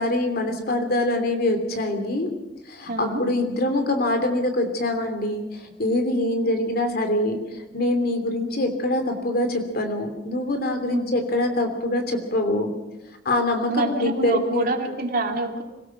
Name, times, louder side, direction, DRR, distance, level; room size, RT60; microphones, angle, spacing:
voice 1, 0.0-2.3 2.7-7.4 7.7-12.7 13.2-14.7, left 1 dB, 60° left, 6 dB, 3.0 m, -24 dB
voice 2, 2.9-3.2 10.9-11.2 13.7-15.6, right 2 dB, 55° right, 3 dB, 2.8 m, -26 dB
25.0 x 17.5 x 6.1 m, 1.0 s
head